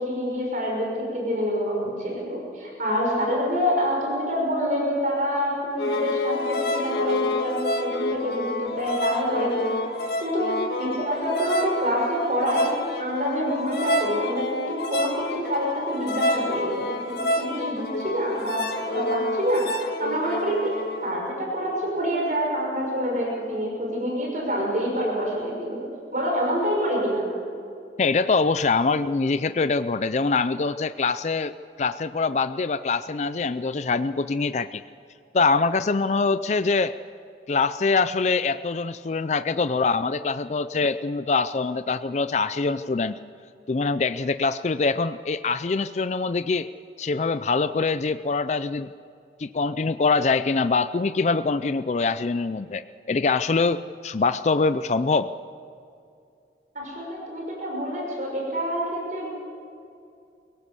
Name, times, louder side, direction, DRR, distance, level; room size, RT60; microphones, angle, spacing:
voice 1, 0.0-9.8 10.2-12.7 13.0-19.7 20.0-27.3 56.7-59.3, equal, 45° right, -2 dB, 6.0 m, -27 dB
sound 1, 5.8-21.2, left 1 dB, 70° left, 1.7 m, -28 dB
voice 2, 28.0-34.8 35.3-36.9 37.5-43.1 43.7-46.7 47.0-48.9 49.4-55.3, left 4 dB, 40° left, 12 dB, 0.4 m, -24 dB
23.5 x 17.5 x 6.9 m, 2.5 s
head